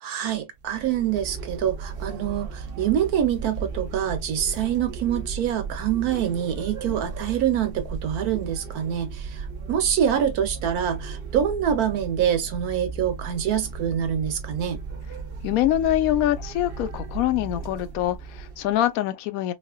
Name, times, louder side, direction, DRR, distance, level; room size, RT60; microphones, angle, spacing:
voice 1, 0.0-14.8, right 9 dB, 75° right, 1.3 m, -25 dB
sound 1, 0.6-18.8, right 4 dB, 50° right, 0.7 m, -35 dB
voice 2, 15.4-19.5, left 13 dB, 75° left, 1.0 m, -24 dB
4.0 x 2.4 x 2.2 m
omnidirectional pair, 1.6 m